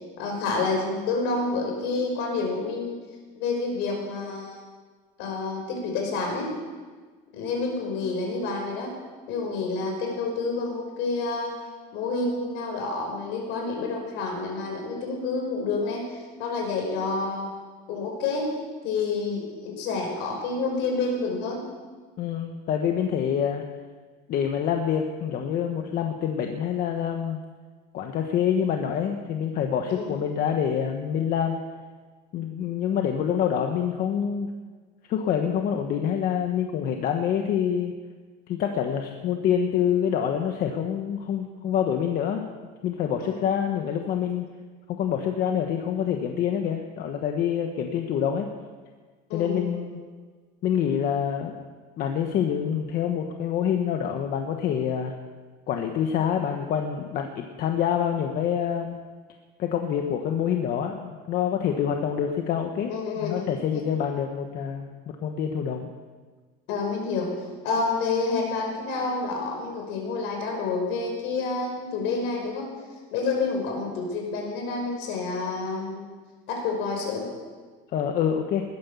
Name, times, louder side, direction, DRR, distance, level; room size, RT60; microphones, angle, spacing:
voice 1, 0.0-3.0 3.4-4.6 5.2-6.5 7.3-8.9 9.3-11.5 11.9-17.5 17.9-18.5 18.8-21.6 29.9-30.1 43.2-43.4 49.3-49.8 62.9-63.8 66.7-72.7 73.1-76.1 76.5-77.2, left 3 dB, 75° left, 2 dB, 5.6 m, -29 dB
voice 2, 22.2-23.6 24.3-27.4 27.9-31.6 32.3-34.5 35.1-37.9 38.5-42.5 42.8-44.4 44.9-48.5 49.3-50.0 50.6-51.5 52.0-55.1 55.7-59.0 59.6-64.9 65.2-65.9 77.9-78.6, left 8 dB, 50° left, 4 dB, 1.3 m, -26 dB
20.0 x 10.0 x 7.1 m, 1.4 s
cardioid pair, 150°, 19 cm